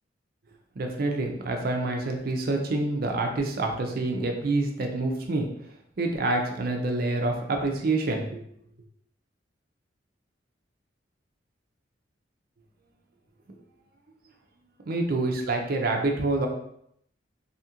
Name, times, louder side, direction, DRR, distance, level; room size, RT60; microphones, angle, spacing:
voice 1, 0.8-5.5 6.0-8.4 14.9-16.5, right 2 dB, 55° right, 3 dB, 0.5 m, -27 dB
2.8 x 2.4 x 2.8 m, 0.72 s
head